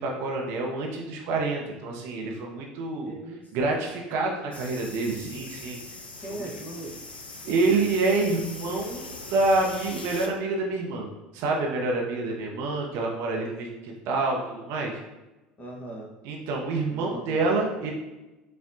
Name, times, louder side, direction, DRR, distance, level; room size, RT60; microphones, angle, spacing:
voice 1, 0.0-3.2 3.5-6.5 7.4-11.1 11.3-15.0 16.2-17.9, right 3 dB, 55° right, 0 dB, 0.6 m, -27 dB
voice 2, 3.0-3.5 6.2-6.9 15.6-16.1 16.9-17.5, right 1 dB, 30° left, -1 dB, 1.0 m, -39 dB
sound 1, 4.5-10.3, left 3 dB, 85° left, 0.4 m, -41 dB
5.3 x 2.1 x 2.5 m, 1.0 s
figure-of-eight pair, 65°, 5 cm